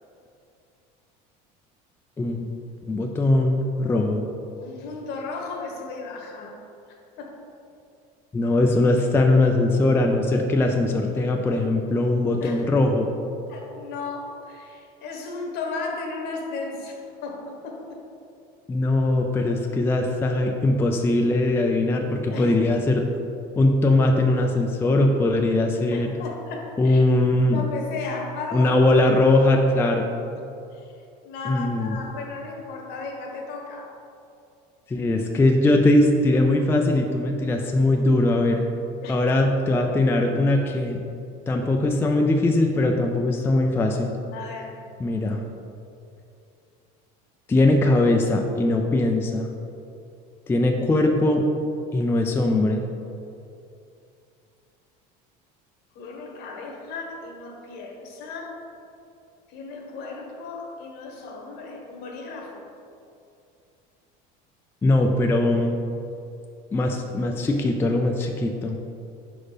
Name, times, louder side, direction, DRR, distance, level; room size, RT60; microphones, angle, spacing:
voice 1, 2.2-2.5 2.9-4.2 8.3-13.1 18.7-23.0 23.6-26.1 26.8-27.6 28.5-30.1 31.5-32.0 34.9-38.6 39.1-41.0 41.5-44.2 45.0-45.4 47.5-49.5 50.5-51.4 51.9-52.8 64.8-65.8 66.7-68.8, left 2 dB, 10° left, 2 dB, 0.4 m, -21 dB
voice 2, 4.6-6.6 7.2-7.4 12.4-12.7 13.5-18.0 22.3-22.5 25.9-27.1 27.5-28.9 30.7-30.9 31.2-33.9 39.0-39.3 44.3-44.8 55.9-58.6 59.5-62.6, left 3 dB, 60° left, 1 dB, 1.1 m, -35 dB
5.0 x 4.3 x 4.9 m, 2.6 s
cardioid pair, 125°, 18 cm